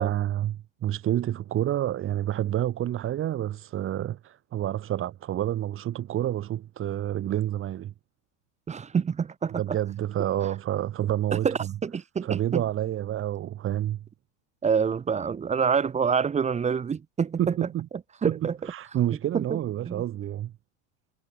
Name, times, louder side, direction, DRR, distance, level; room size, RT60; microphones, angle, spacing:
voice 1, 0.0-7.9 9.5-11.7 12.2-14.0 17.4-17.9 18.3-20.5, right 12 dB, 35° right, 5.4 m, -29 dB
voice 2, 8.7-9.6 11.3-12.6 14.6-17.7 18.2-18.6 19.3-19.6 19.9-20.0, right 6 dB, 20° right, 1.9 m, -27 dB
supercardioid pair, 135°, 37 cm